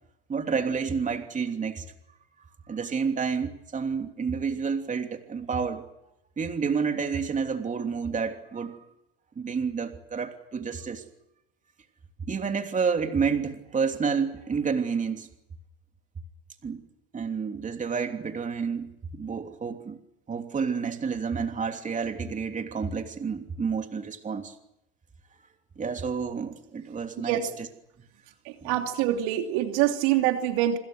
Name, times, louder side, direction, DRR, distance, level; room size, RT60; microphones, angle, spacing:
voice 1, 0.3-1.8 2.7-5.8 6.4-8.8 9.4-11.0 12.3-15.3 16.6-16.8 17.1-20.0 20.3-24.5 25.8-27.4 28.6-28.7, right 5 dB, 20° right, 5 dB, 3.1 m, -29 dB
voice 2, 27.2-27.6 28.4-30.8, right 12 dB, 60° right, 5 dB, 3.0 m, -25 dB
27.0 x 25.5 x 6.3 m, 0.84 s
hypercardioid pair, 90°, 34 cm